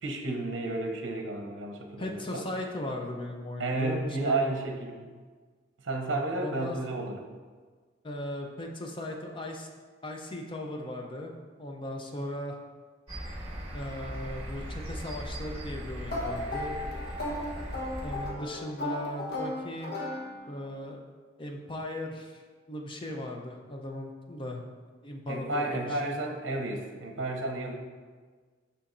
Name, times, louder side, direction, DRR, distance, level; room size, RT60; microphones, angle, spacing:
voice 1, 0.0-2.4 3.6-5.1 5.8-7.2 25.3-27.7, right 2 dB, 75° right, 2 dB, 0.7 m, -32 dB
voice 2, 2.0-4.5 6.4-6.8 8.0-9.7 10.0-11.3 11.6-12.6 13.7-16.8 18.0-20.0 20.5-21.0 21.4-22.4 22.7-24.7 25.0-26.1, left 1 dB, 25° left, 2 dB, 0.6 m, -37 dB
sound 1, 13.1-18.3, right 1 dB, 30° right, 1.4 m, -39 dB
sound 2, 16.1-20.7, left 1 dB, 60° left, 1.1 m, -36 dB
7.0 x 5.6 x 2.5 m, 1.5 s
head